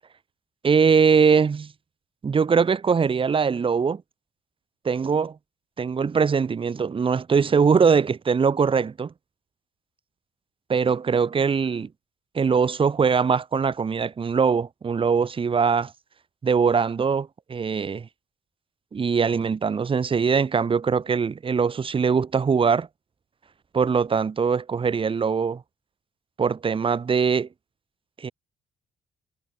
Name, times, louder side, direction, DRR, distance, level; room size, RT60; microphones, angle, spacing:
voice 1, 0.6-1.7 2.2-4.0 4.8-5.3 5.8-9.1 10.7-11.9 12.3-15.9 16.4-18.1 18.9-22.9 23.7-25.6 26.4-27.5 28.2-28.3, right 6 dB, 25° right, 0.5 m, -22 dB
hypercardioid pair, 50°, 21 cm